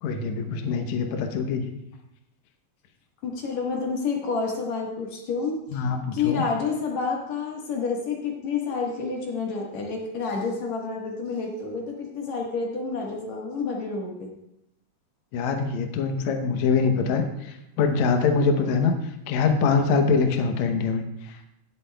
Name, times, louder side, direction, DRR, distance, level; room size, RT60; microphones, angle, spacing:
voice 1, 0.0-1.6 5.7-6.4 15.3-19.0 19.3-21.0, left 5 dB, 85° left, 5 dB, 1.6 m, -24 dB
voice 2, 3.2-5.9 6.1-14.3, left 4 dB, 55° left, -1 dB, 2.2 m, -29 dB
18.5 x 8.2 x 2.3 m, 0.85 s
omnidirectional pair, 4.6 m